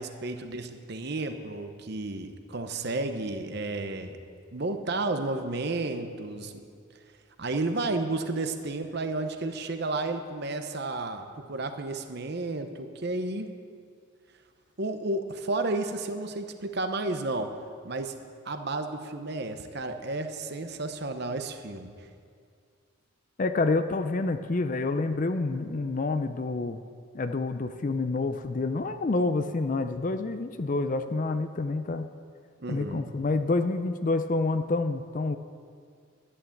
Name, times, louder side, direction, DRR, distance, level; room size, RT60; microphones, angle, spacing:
voice 1, 0.0-4.2 4.5-6.5 7.4-13.5 14.8-17.5 17.8-18.1 18.4-22.1 32.6-33.1, right 2 dB, 50° right, 7 dB, 0.9 m, -32 dB
voice 2, 23.4-26.8 27.1-32.1 32.7-35.4, left 3 dB, 40° left, 9 dB, 0.4 m, -28 dB
11.5 x 11.0 x 7.2 m, 2.2 s
head